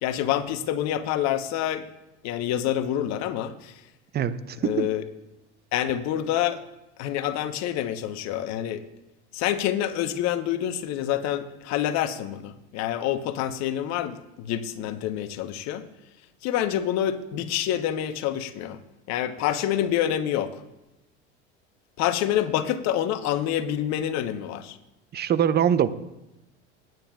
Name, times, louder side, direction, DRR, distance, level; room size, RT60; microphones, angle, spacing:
voice 1, 0.0-1.9 2.2-3.7 4.6-5.0 5.7-6.6 7.0-8.8 9.3-15.8 16.4-18.8 19.1-20.6 22.0-24.8, left 11 dB, 50° left, 11 dB, 1.1 m, -27 dB
voice 2, 4.1-4.9 25.1-25.9, right 9 dB, 30° right, 14 dB, 0.7 m, -23 dB
27.5 x 9.3 x 2.4 m, 0.95 s
hypercardioid pair, 75°, 35 cm